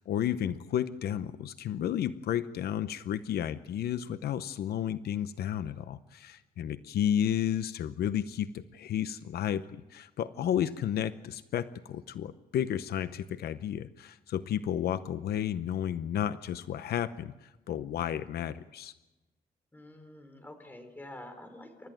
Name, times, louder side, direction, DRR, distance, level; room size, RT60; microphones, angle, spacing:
voice 1, 0.0-18.9, left 10 dB, 80° left, 13 dB, 0.8 m, -32 dB
voice 2, 19.7-21.9, left 1 dB, 10° left, 6 dB, 4.0 m, -47 dB
29.0 x 13.5 x 9.0 m, 1.1 s
cardioid pair, 135°, 16 cm